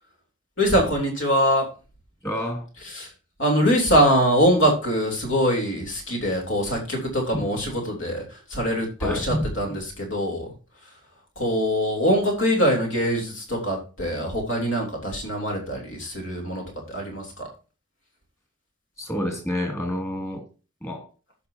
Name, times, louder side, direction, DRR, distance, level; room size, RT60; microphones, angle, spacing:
voice 1, 0.6-1.7 2.8-3.1 3.4-10.5 10.8-11.0 11.3-17.5, equal, 60° left, 3.4 m, -23 dB
voice 2, 2.2-2.7 7.3-7.5 9.0-9.6 19.0-20.5 20.8-21.1, left 1 dB, 15° left, 2.5 m, -28 dB
15.0 x 5.9 x 2.8 m
head